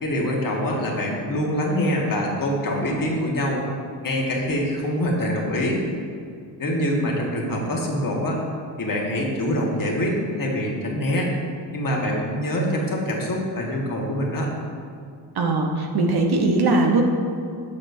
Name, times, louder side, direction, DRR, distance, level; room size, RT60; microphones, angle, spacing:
voice 1, 0.0-3.6 4.0-5.8 6.6-8.4 8.8-11.3 11.7-14.5, equal, 40° left, -2 dB, 1.5 m, -24 dB
voice 2, 15.3-17.0, right 2 dB, 50° right, 2 dB, 1.0 m, -20 dB
7.1 x 6.2 x 2.7 m, 2.3 s
supercardioid pair, 60°, 48 cm